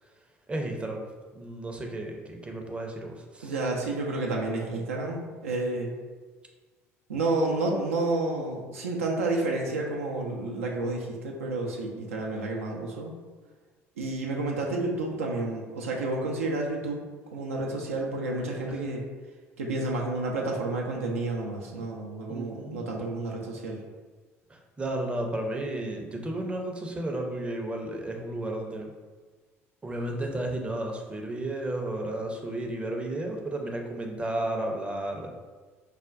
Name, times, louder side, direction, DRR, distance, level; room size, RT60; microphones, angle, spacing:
voice 1, 0.5-1.1 1.3-3.6 22.3-22.8 24.5-28.9 29.8-35.3, right 1 dB, 15° right, 2 dB, 0.5 m, -33 dB
voice 2, 3.4-5.9 7.1-13.2 14.0-17.0 17.3-19.1 19.6-23.8, right 2 dB, 75° right, -1 dB, 0.4 m, -30 dB
4.8 x 2.1 x 2.5 m, 1.4 s
figure-of-eight pair, 60°, 7 cm